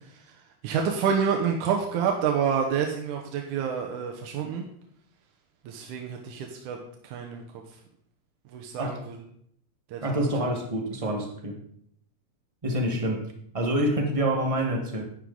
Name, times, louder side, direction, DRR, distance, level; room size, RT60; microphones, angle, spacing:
voice 1, 0.6-4.7 5.7-6.8 7.0-7.4 8.5-9.2 9.9-10.2, right 7 dB, 85° right, 1 dB, 2.5 m, -28 dB
voice 2, 10.0-11.6 12.6-13.2 13.5-15.0, right 1 dB, 30° right, 1 dB, 0.6 m, -27 dB
11.0 x 9.9 x 3.9 m, 0.69 s
omnidirectional pair, 3.4 m